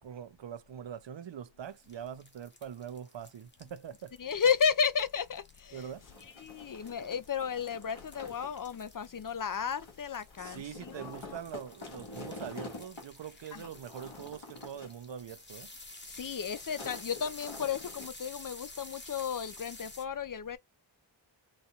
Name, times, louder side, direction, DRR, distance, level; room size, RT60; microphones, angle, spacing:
voice 1, 0.0-4.2 5.7-6.1 10.4-15.7, right 8 dB, 65° right, 0.5 m, -43 dB
sound 1, 1.6-20.0, left 2 dB, 25° left, 1.0 m, -51 dB
voice 2, 4.2-5.9 6.4-11.4 13.5-13.7 16.1-20.6, left 7 dB, 45° left, 0.4 m, -33 dB
sound 2, 5.7-18.1, left 2 dB, 75° left, 1.5 m, -48 dB
4.0 x 2.3 x 2.8 m
wide cardioid pair, 70°, 47 cm